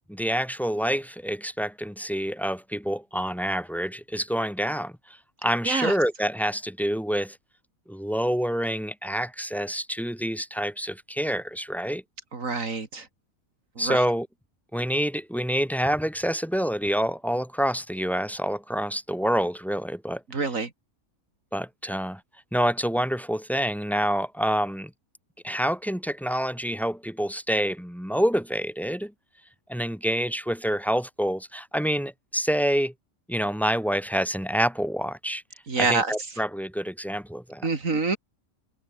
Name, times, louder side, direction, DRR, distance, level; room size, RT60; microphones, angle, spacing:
voice 1, 0.1-7.4 7.9-12.0 13.8-14.3 14.7-20.2 21.5-22.2 22.5-24.9 25.4-29.1 29.7-32.9 33.3-35.4 35.8-37.7, equal, ahead, 6.0 m, -27 dB
voice 2, 12.3-13.1 13.8-14.0 20.3-20.7 35.7-36.1 37.6-38.2, right 4 dB, 65° right, 3.2 m, -26 dB
omnidirectional pair, 1.5 m